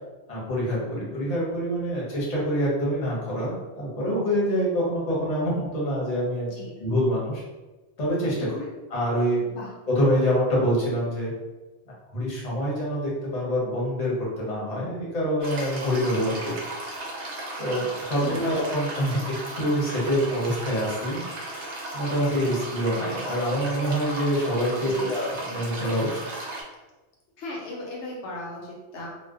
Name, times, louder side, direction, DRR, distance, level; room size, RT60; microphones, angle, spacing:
voice 1, 0.3-6.5 6.8-7.4 8.0-8.5 8.9-9.4 9.9-11.3 12.1-16.6 17.6-19.2 19.6-21.2 21.9-26.3, equal, 40° left, -5 dB, 0.8 m, -26 dB
voice 2, 6.5-6.8 8.4-8.7 9.5-9.7 18.2-18.5 24.8-25.1 27.4-29.1, left 1 dB, 80° left, -2 dB, 1.0 m, -37 dB
sound 1, 15.4-26.6, right 1 dB, 80° right, 0.9 m, -36 dB
2.5 x 2.1 x 2.3 m, 1.2 s
omnidirectional pair, 1.2 m